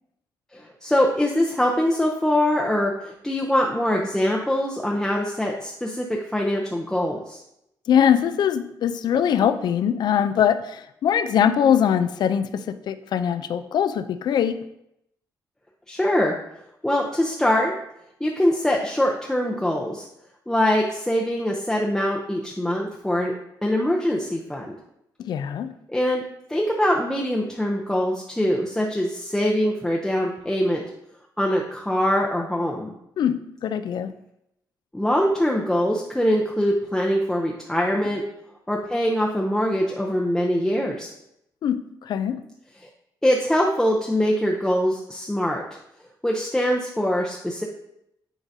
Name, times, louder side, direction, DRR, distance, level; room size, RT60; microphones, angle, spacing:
voice 1, 0.5-7.4 15.9-16.3 16.8-17.7 18.2-20.0 20.5-23.3 23.6-24.8 25.9-26.2 26.5-30.8 31.4-32.9 34.9-38.2 38.7-41.1 43.2-45.6 46.2-47.6, equal, 5° left, -2 dB, 0.6 m, -23 dB
voice 2, 7.9-14.6 25.2-25.7 33.2-34.1 41.6-42.4, left 9 dB, 65° left, 11 dB, 0.4 m, -22 dB
9.0 x 3.9 x 2.7 m, 0.80 s
cardioid pair, 100°, 8 cm